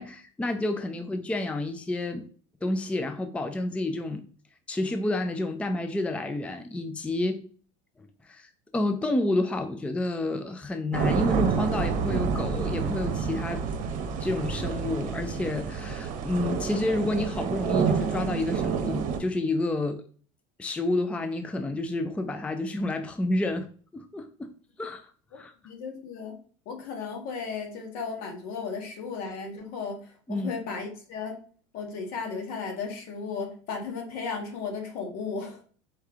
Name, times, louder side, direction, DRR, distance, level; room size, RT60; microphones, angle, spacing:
voice 1, 0.0-2.2 2.6-4.3 4.7-7.5 8.0-13.6 14.2-20.0 20.6-24.5 24.8-25.1 25.4-25.5 30.3-30.5, left 2 dB, 5° left, 0.4 m, -30 dB
sound 1, 10.9-19.2, right 6 dB, 50° right, 0.9 m, -28 dB
voice 2, 25.6-26.4 26.6-30.0 30.3-31.4 31.7-35.6, left 5 dB, 60° left, 1.6 m, -35 dB
4.5 x 3.2 x 3.5 m
supercardioid pair, 105°, 16 cm